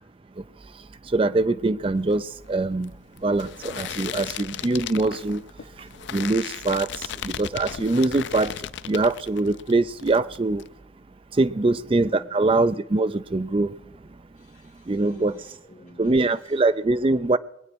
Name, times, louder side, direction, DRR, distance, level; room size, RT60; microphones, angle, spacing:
voice 1, 1.1-2.2 2.5-2.9 3.2-5.4 6.1-6.9 7.2-8.5 8.9-10.6 11.4-13.7 14.9-15.3 16.0-17.4, right 2 dB, 30° right, 0.4 m, -23 dB
sound 1, 2.0-9.7 10.0-10.7, left 9 dB, 70° left, 0.4 m, -36 dB
voice 2, 14.4-16.3, left 1 dB, 40° left, 2.3 m, -48 dB
21.0 x 8.3 x 6.1 m
head